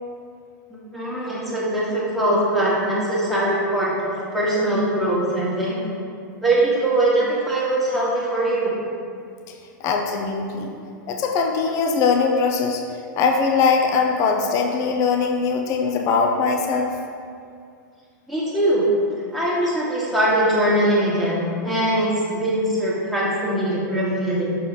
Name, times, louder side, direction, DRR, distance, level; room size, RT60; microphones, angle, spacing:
voice 1, 0.9-5.8 6.4-8.8 18.3-18.9 19.3-24.6, right 1 dB, ahead, -7 dB, 1.4 m, -22 dB
voice 2, 9.8-10.7 11.1-12.8 13.2-16.9, left 5 dB, 30° left, 3 dB, 0.5 m, -21 dB
5.9 x 3.8 x 4.9 m, 2.3 s
hypercardioid pair, 140°, 11 cm